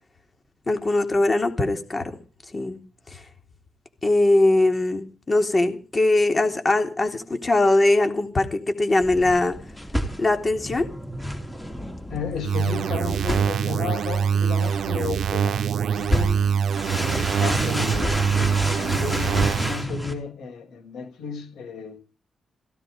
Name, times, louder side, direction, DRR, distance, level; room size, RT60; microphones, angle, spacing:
voice 1, 0.7-2.1 2.5-2.8 3.1-3.2 4.0-9.6 10.2-10.9, left 2 dB, 30° left, 3.6 m, -21 dB
sound 1, 9.0-20.1, equal, 10° left, 4.0 m, -30 dB
voice 2, 12.1-16.4 17.0-22.0, left 5 dB, 85° left, 6.1 m, -33 dB
sound 2, 12.4-19.8, right 7 dB, 80° right, 0.9 m, -24 dB
17.0 x 16.5 x 5.2 m
cardioid pair, 115°, 0 cm